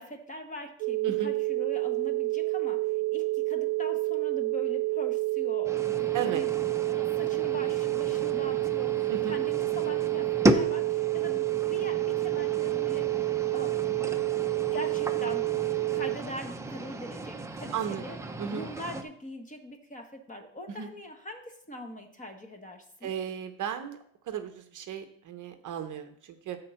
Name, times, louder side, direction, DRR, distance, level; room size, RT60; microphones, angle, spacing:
voice 1, 0.0-6.5 6.8-13.1 13.5-13.8 14.7-18.2 18.5-23.1, left 1 dB, 15° left, 5 dB, 1.1 m, -42 dB
sound 1, 0.8-16.2, right 21 dB, 70° right, 0.5 m, -29 dB
sound 2, 5.6-19.0, right 1 dB, 5° right, 0.4 m, -34 dB
voice 2, 17.7-18.0 18.4-18.7 20.7-20.9 23.0-24.0 24.2-26.6, right 8 dB, 40° right, 8 dB, 0.8 m, -35 dB
9.7 x 3.8 x 6.9 m, 0.65 s
cardioid pair, 135°, 47 cm